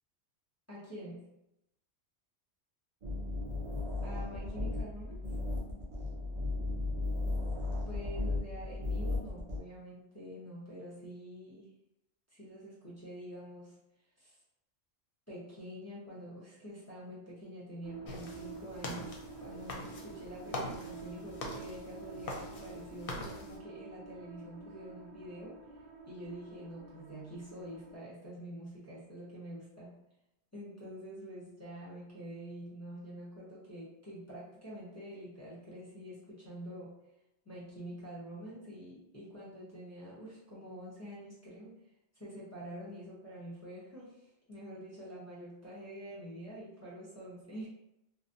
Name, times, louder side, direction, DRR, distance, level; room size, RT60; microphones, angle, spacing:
voice 1, 0.7-1.3 4.0-5.2 7.9-11.7 12.3-13.8 14.2-14.4 15.3-25.6 26.1-30.0 30.5-37.0 37.4-41.8 42.1-47.7, equal, 20° left, -8 dB, 0.6 m, -47 dB
sound 1, 3.0-9.6, left 2 dB, 50° right, 0.4 m, -35 dB
sound 2, 17.8-28.0, right 4 dB, 75° right, 0.8 m, -49 dB
sound 3, 18.1-23.6, left 1 dB, 65° left, 0.7 m, -43 dB
2.5 x 2.1 x 2.6 m, 0.87 s
omnidirectional pair, 1.1 m